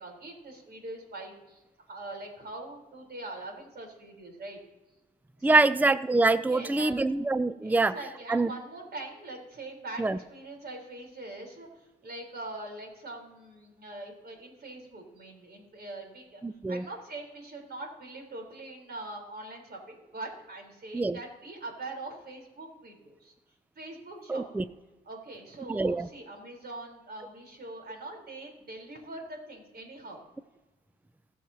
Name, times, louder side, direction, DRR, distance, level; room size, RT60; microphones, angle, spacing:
voice 1, 0.0-4.6 5.4-5.6 6.5-7.0 7.6-16.4 16.7-23.3 23.8-24.7 25.0-30.2, right 2 dB, 50° right, 2 dB, 4.1 m, -43 dB
voice 2, 5.4-8.0 8.3-8.5 10.0-10.2 16.4-16.8 20.9-21.2 24.3-24.6 25.7-26.1, right 3 dB, 10° right, 15 dB, 0.6 m, -25 dB
21.0 x 7.5 x 2.9 m, 1.1 s
hypercardioid pair, 50°, 21 cm